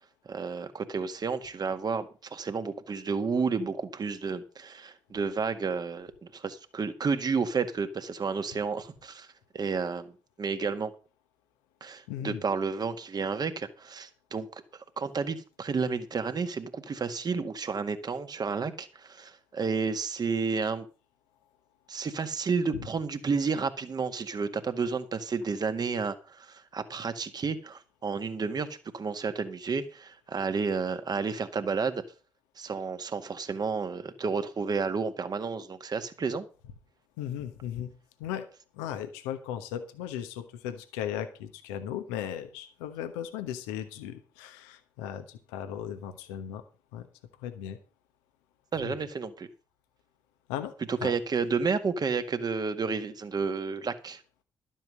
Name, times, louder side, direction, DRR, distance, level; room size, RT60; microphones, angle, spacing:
voice 1, 0.3-9.3 9.5-10.1 10.4-10.9 11.8-14.5 14.7-20.9 21.9-32.0 32.6-36.4 48.7-49.5 50.9-54.2, right 5 dB, 45° right, 1.8 m, -31 dB
voice 2, 12.1-12.4 22.8-22.9 37.2-37.9 38.2-38.5 38.7-46.6 46.9-47.1 47.4-47.8 48.8-48.9 50.5-50.7 51.0-51.1, left 10 dB, 80° left, 1.1 m, -37 dB
12.5 x 7.7 x 6.4 m
hypercardioid pair, 40°, 9 cm